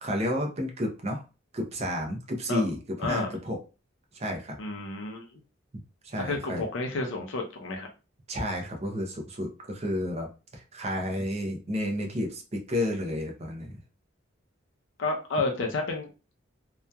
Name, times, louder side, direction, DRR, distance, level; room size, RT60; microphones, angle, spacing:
voice 1, 0.0-1.2 1.5-3.6 4.1-4.6 6.0-6.6 8.3-13.8, left 1 dB, 30° right, 2 dB, 0.6 m, -31 dB
voice 2, 4.6-5.3 6.2-7.9 15.0-16.1, left 3 dB, 70° left, 2 dB, 0.6 m, -30 dB
2.8 x 2.3 x 2.2 m, 0.32 s
head